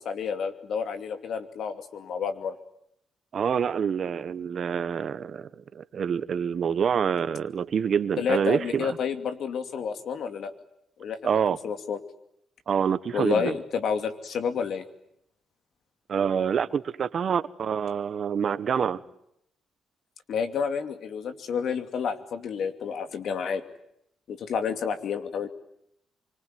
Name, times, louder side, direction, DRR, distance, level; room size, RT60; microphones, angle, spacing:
voice 1, 0.0-2.5 8.2-10.5 11.0-11.2 11.6-12.0 13.1-14.8 20.3-23.6 24.3-25.5, left 6 dB, 70° left, 8 dB, 2.6 m, -30 dB
voice 2, 3.3-8.9 11.2-11.6 12.7-13.6 16.1-19.0, right 7 dB, 60° right, 15 dB, 1.3 m, -26 dB
25.0 x 24.5 x 9.5 m, 0.77 s
supercardioid pair, 60°, 0 cm